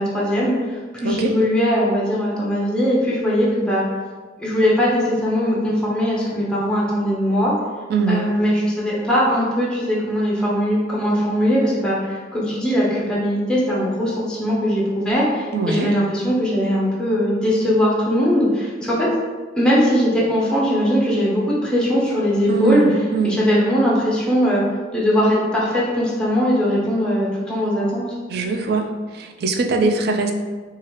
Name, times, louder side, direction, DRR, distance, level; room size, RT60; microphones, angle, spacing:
voice 1, 0.0-3.8 4.4-7.5 8.1-19.1 19.6-22.8 23.2-24.6 24.9-28.1, equal, 5° left, -6 dB, 0.6 m, -20 dB
voice 2, 1.0-1.3 7.9-8.3 15.5-15.9 22.5-23.4 28.3-30.3, right 3 dB, 60° right, 3 dB, 0.3 m, -21 dB
2.9 x 2.4 x 3.0 m, 1.4 s
head